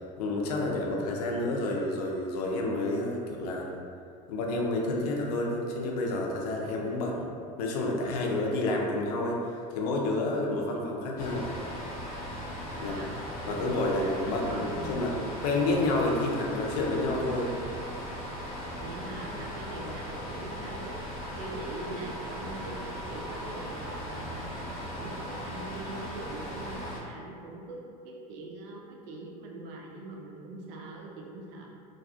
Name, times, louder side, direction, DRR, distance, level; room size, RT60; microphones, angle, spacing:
voice 1, 0.2-3.7 4.3-7.3 7.6-11.5 12.8-13.2 13.5-15.2 15.4-17.5 19.8-19.9, left 2 dB, 85° left, 0 dB, 0.5 m, -29 dB
sound 1, 11.2-27.0, equal, 45° left, 0.8 m, -38 dB
voice 2, 12.7-14.0 14.5-15.9 18.7-31.7, right 2 dB, 65° right, -1 dB, 0.5 m, -43 dB
2.5 x 2.4 x 2.3 m, 2.4 s
supercardioid pair, 100°, 20 cm